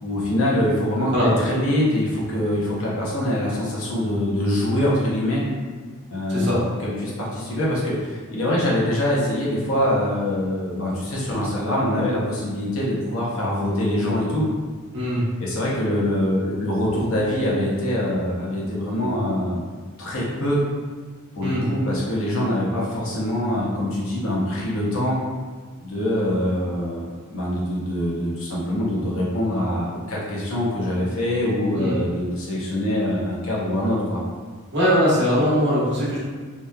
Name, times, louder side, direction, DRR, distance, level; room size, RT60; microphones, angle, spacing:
voice 1, 0.0-5.4 6.1-14.4 15.4-19.6 20.0-20.6 21.3-25.2 25.8-34.2, left 1 dB, 70° left, -5 dB, 0.7 m, -24 dB
voice 2, 6.3-6.6 14.9-15.2 21.4-21.6 31.8-32.0 34.7-36.2, equal, 55° right, -7 dB, 0.9 m, -21 dB
2.9 x 2.3 x 2.2 m, 1.5 s
head